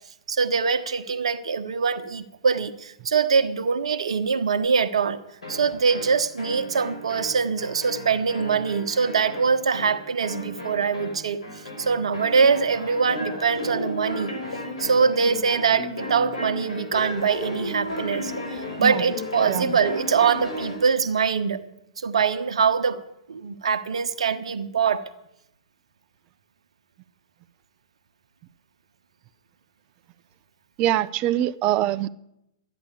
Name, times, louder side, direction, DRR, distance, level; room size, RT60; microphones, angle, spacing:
voice 1, 0.3-5.2 5.5-11.4 11.8-14.3 14.8-21.6 22.0-23.0 23.3-25.0, right 5 dB, 75° right, 1.2 m, -23 dB
sound 1, 5.4-20.9, left 1 dB, 85° left, 5.1 m, -34 dB
voice 2, 30.8-32.1, right 13 dB, 35° right, 0.6 m, -23 dB
12.5 x 10.0 x 8.3 m
hypercardioid pair, 115°, 3 cm